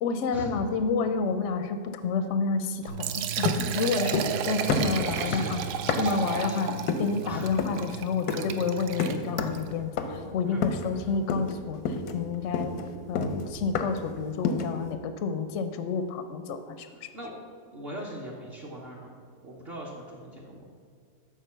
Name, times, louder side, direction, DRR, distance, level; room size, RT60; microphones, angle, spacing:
voice 1, 0.0-5.6 6.0-12.7 13.1-17.1, left 5 dB, 70° left, 9 dB, 0.7 m, -30 dB
Liquid, 2.8-9.7, right 8 dB, 85° right, 1.1 m, -33 dB
sound 1, 2.9-9.1, right 7 dB, 65° right, 1.9 m, -40 dB
sound 2, 3.4-4.4 4.7-6.3 6.9-7.2 7.6-7.9 8.3-8.6 9.0-9.7 10.0-10.3 10.6-11.0 11.3-11.6 11.8-14.1 14.4-14.8, left 4 dB, 90° left, 1.2 m, -30 dB
voice 2, 4.4-6.6 7.2-7.5 8.2-8.4 10.5-10.6 10.9-11.1 17.1-17.3 17.7-19.1 19.4-20.6, equal, 45° right, -4 dB, 1.2 m, -41 dB
7.4 x 5.0 x 6.7 m, 2.1 s
omnidirectional pair, 1.6 m